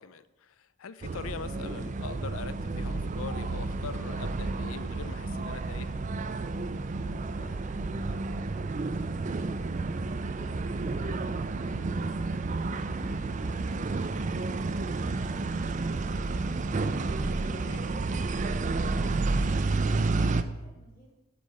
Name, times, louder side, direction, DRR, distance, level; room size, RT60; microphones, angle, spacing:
voice 1, 0.0-6.0 11.6-11.9 17.5-17.8, left 6 dB, 80° left, 15 dB, 0.5 m, -43 dB
sound 1, 1.0-20.4, right 3 dB, 35° right, 0.4 m, -31 dB
voice 2, 7.0-11.5 11.9-15.6 16.0-17.3 17.9-21.1, equal, 45° left, -3 dB, 2.9 m, -57 dB
8.4 x 7.5 x 5.5 m, 0.98 s
head